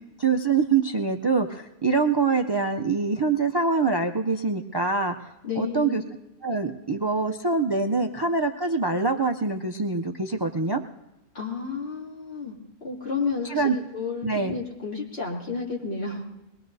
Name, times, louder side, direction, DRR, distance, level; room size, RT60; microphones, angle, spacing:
voice 1, 0.2-6.0 6.4-10.8 13.5-13.8 14.2-14.6, right 4 dB, 35° right, 4 dB, 0.4 m, -24 dB
voice 2, 5.4-6.0 11.3-16.2, left 5 dB, 70° left, -4 dB, 2.9 m, -31 dB
22.0 x 19.0 x 2.7 m, 0.97 s
omnidirectional pair, 1.1 m